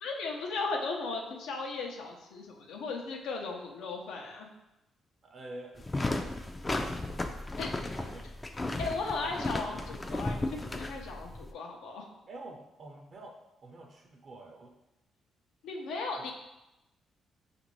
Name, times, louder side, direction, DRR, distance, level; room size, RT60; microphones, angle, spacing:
voice 1, 0.0-4.5 7.6-7.7 8.8-12.1 15.6-16.3, left 3 dB, 85° left, 1 dB, 0.6 m, -36 dB
voice 2, 5.2-6.5 6.8-7.2 8.0-8.7 9.2-9.3 12.3-13.4 13.6-14.7, right 2 dB, 50° right, 1 dB, 0.6 m, -48 dB
sound 1, 5.8-11.5, left 2 dB, 20° left, 0.4 m, -35 dB
5.1 x 2.6 x 3.0 m, 0.93 s
cardioid pair, 90°, 0 cm